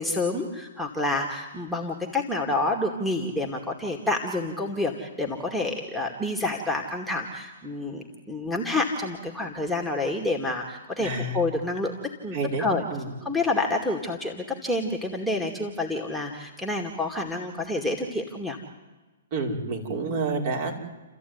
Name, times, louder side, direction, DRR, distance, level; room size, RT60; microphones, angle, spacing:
voice 1, 0.0-11.1 11.3-11.9 12.2-12.8 13.2-18.6, left 2 dB, ahead, -2 dB, 2.3 m, -28 dB
voice 2, 11.0-11.4 12.3-13.1 19.3-20.8, right 3 dB, 45° right, 1 dB, 5.4 m, -29 dB
29.5 x 14.0 x 9.6 m, 1.2 s
hypercardioid pair, 140°, 0 cm